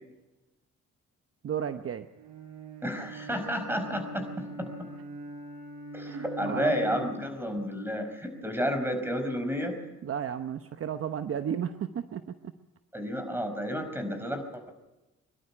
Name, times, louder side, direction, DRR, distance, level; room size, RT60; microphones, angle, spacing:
voice 1, 1.4-2.1 6.1-6.7 10.0-12.2, right 8 dB, 50° right, 9 dB, 0.9 m, -33 dB
Bowed string instrument, 2.2-7.4, right 1 dB, 70° right, 4.6 m, -41 dB
voice 2, 2.8-4.9 5.9-9.8 12.9-14.7, equal, 5° right, 7 dB, 5.0 m, -31 dB
23.0 x 12.0 x 9.9 m, 1.0 s
cardioid pair, 90°, 30 cm